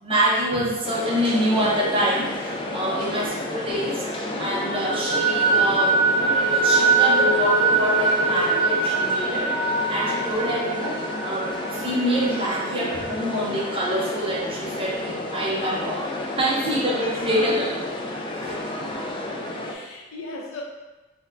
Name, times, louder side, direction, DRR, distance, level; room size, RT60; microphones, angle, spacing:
voice 1, 0.0-4.1 4.4-16.0 16.4-17.9 18.3-18.6 18.9-19.0, equal, 25° right, -3 dB, 0.6 m, -26 dB
sound 1, 0.8-19.7, left 1 dB, 25° left, 0.3 m, -31 dB
sound 2, 1.3-4.0 4.3-13.8, right 3 dB, 5° right, 1.2 m, -24 dB
voice 2, 3.0-3.4 19.6-20.6, left 2 dB, 80° left, -2 dB, 0.6 m, -38 dB
4.2 x 2.1 x 2.6 m, 1.1 s
head